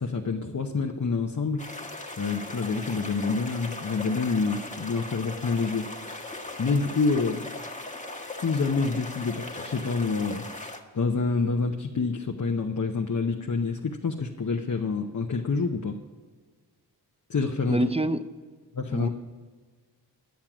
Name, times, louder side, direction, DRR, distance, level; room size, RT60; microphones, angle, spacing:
voice 1, 0.0-7.4 8.4-16.0 17.3-17.9 18.7-19.1, left 4 dB, 45° left, 2 dB, 0.8 m, -28 dB
sound 1, 1.6-10.8, left 2 dB, 20° left, 1.3 m, -39 dB
voice 2, 17.7-18.2 18.9-19.1, right 1 dB, 15° right, 11 dB, 0.5 m, -26 dB
10.5 x 7.4 x 6.1 m, 1.5 s
cardioid pair, 50°, 40 cm